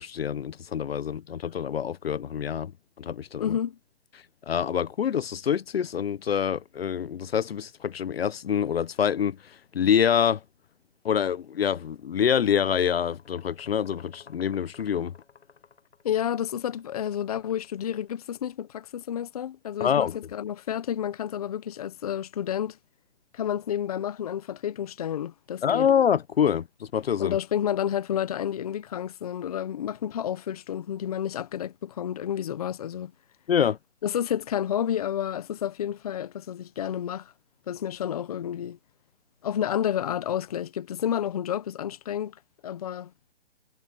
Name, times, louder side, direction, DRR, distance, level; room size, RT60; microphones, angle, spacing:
voice 1, 0.0-2.7 3.0-3.6 4.5-10.4 11.0-15.1 19.8-20.2 25.6-27.4 33.5-33.8, left 8 dB, 60° left, 0.9 m, -26 dB
voice 2, 3.4-3.8 16.0-22.8 23.3-25.9 27.2-33.1 34.0-37.3 37.7-38.8 39.4-43.1, left 10 dB, 35° left, 0.9 m, -30 dB
sound 1, 12.9-18.3, left 6 dB, 85° left, 4.3 m, -54 dB
hypercardioid pair, 165°, 34 cm